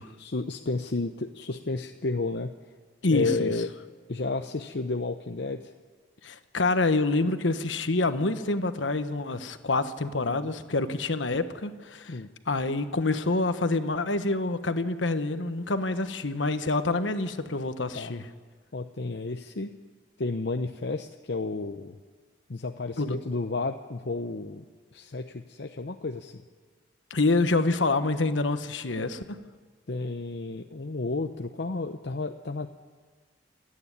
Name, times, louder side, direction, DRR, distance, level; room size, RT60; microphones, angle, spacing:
voice 1, 0.2-2.5 3.1-3.7 4.1-5.7 12.1-12.3 17.9-18.1 18.7-19.7 20.2-22.0 22.5-24.6 24.9-26.4 29.9-32.7, left 3 dB, 65° left, 5 dB, 0.7 m, -32 dB
voice 2, 3.0-3.5 6.2-12.2 12.5-18.2 23.0-23.2 27.1-29.4, left 2 dB, 85° left, 9 dB, 1.2 m, -27 dB
28.0 x 9.8 x 9.8 m, 1.5 s
head